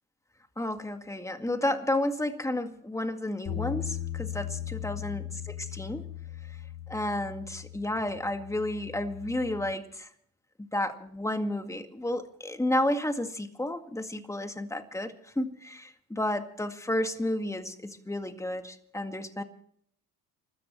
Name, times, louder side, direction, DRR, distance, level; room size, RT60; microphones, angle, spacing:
voice 1, 0.6-6.0 6.9-10.1 10.6-19.4, left 1 dB, 5° left, 7 dB, 2.0 m, -31 dB
sound 1, 3.5-9.7, left 11 dB, 55° left, 4.5 m, -38 dB
29.0 x 13.5 x 3.2 m, 0.65 s
hypercardioid pair, 75°, 45 cm